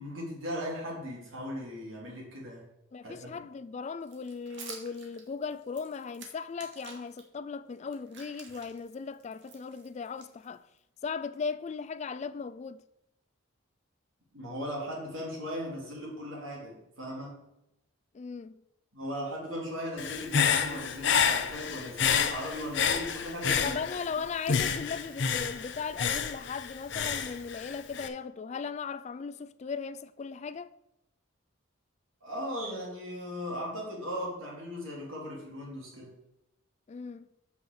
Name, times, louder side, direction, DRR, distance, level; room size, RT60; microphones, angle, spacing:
voice 1, 0.0-2.7 3.0-3.3 14.3-17.4 18.9-24.2 32.2-36.2, equal, 75° right, 3.7 m, -38 dB
voice 2, 2.9-10.6 11.0-12.8 18.1-18.6 23.6-30.7 36.9-37.3, left 5 dB, 35° left, 0.3 m, -37 dB
sound 1, 4.0-7.2 7.7-10.8, right 5 dB, 60° right, 1.7 m, -50 dB
Human voice / Breathing, 20.0-24.1 24.5-28.1, left 7 dB, 60° left, 0.7 m, -29 dB
6.0 x 5.7 x 6.9 m
head